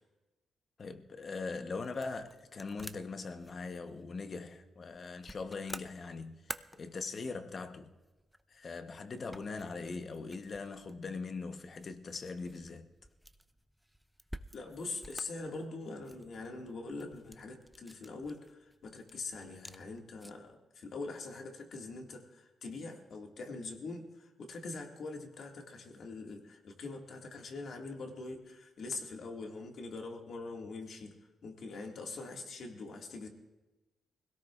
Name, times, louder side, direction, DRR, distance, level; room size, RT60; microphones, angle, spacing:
voice 1, 0.8-6.4 6.7-7.9 8.5-12.9, left 4 dB, 45° left, 0.9 m, -41 dB
sound 1, 1.0-20.6, equal, ahead, 0.4 m, -52 dB
voice 2, 14.5-31.1 31.4-33.3, left 3 dB, 65° left, 1.9 m, -43 dB
24.5 x 17.0 x 2.4 m
cardioid pair, 125°, 0 cm